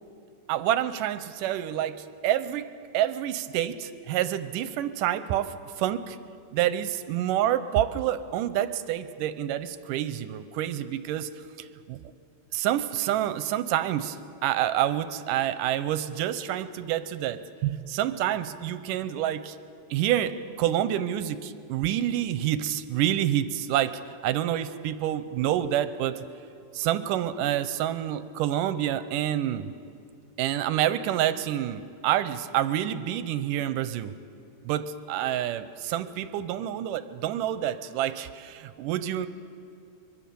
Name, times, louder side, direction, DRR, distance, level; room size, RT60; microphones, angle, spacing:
voice 1, 0.5-2.0 2.2-2.7 2.9-6.2 6.5-11.3 11.9-12.0 12.5-14.2 14.4-19.6 19.9-23.9 24.2-26.2 26.7-29.7 30.4-34.1 34.6-39.3, right 11 dB, 80° right, 12 dB, 2.3 m, -28 dB
24.0 x 23.0 x 7.0 m, 2.6 s
omnidirectional pair, 4.0 m